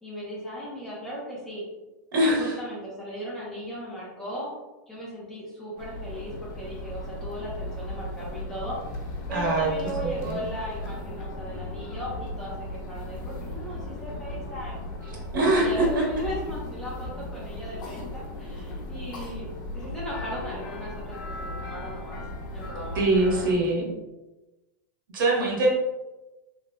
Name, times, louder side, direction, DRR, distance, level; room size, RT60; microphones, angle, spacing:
voice 1, 0.0-1.6 2.2-4.5 4.9-8.8 9.3-14.8 15.6-19.5 19.7-22.2 22.5-23.3, equal, 5° left, -7 dB, 0.7 m, -37 dB
voice 2, 2.1-2.6 9.3-9.7 10.0-10.4 15.3-16.0 22.9-23.9 25.1-25.7, right 2 dB, 75° right, -2 dB, 1.3 m, -23 dB
sound 1, 5.8-23.5, left 1 dB, 65° left, 0.9 m, -36 dB
3.6 x 3.0 x 2.2 m, 1.1 s
supercardioid pair, 165°, 11 cm